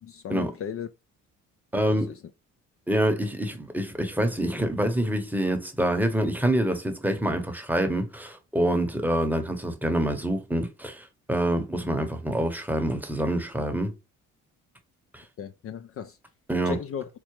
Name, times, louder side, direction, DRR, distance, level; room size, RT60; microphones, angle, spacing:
voice 1, 0.0-0.9 1.9-2.2 15.4-16.2 16.7-17.1, left 8 dB, 50° left, 0.4 m, -36 dB
voice 2, 1.7-2.1 2.9-13.9 15.1-15.2 16.5-16.8, right 1 dB, 5° right, 0.8 m, -26 dB
4.6 x 2.0 x 3.0 m
cardioid pair, 90°, 30 cm